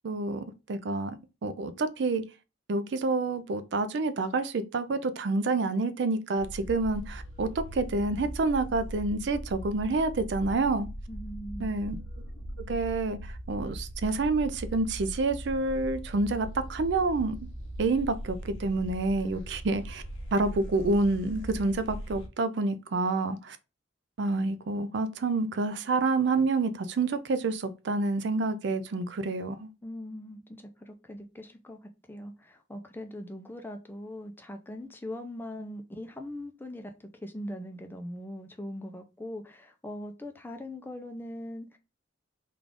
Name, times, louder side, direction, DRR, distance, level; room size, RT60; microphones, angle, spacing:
voice 1, 0.0-1.2 1.4-2.2 2.7-10.9 11.6-12.0 12.7-13.2 13.5-17.4 17.8-20.0 20.3-23.6 24.2-29.7, right 3 dB, 60° right, 0.4 m, -28 dB
sound 1, 6.4-22.3, equal, 85° left, 1.0 m, -40 dB
voice 2, 11.1-11.7 29.8-41.8, left 1 dB, 10° left, 0.4 m, -41 dB
3.7 x 2.4 x 3.4 m
head